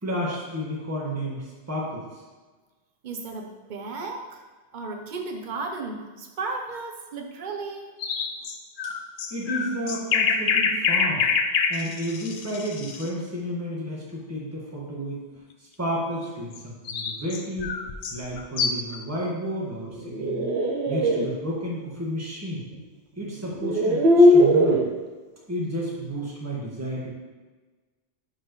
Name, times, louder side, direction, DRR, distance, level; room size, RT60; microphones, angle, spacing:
voice 1, 0.0-2.1 9.3-11.3 11.7-15.2 15.8-17.8 18.1-20.5 20.9-22.7 23.2-24.8 25.5-27.1, equal, 15° right, -5 dB, 1.5 m, -31 dB
voice 2, 3.0-4.4 4.7-7.9, right 3 dB, 50° right, 3 dB, 0.9 m, -34 dB
sound 1, 8.0-13.1 16.5-19.0, left 5 dB, 60° left, 0.7 m, -26 dB
sound 2, 19.9-21.3 22.7-22.8 23.5-24.9, equal, 70° right, 1.1 m, -19 dB
10.0 x 4.7 x 3.1 m, 1.3 s
omnidirectional pair, 1.1 m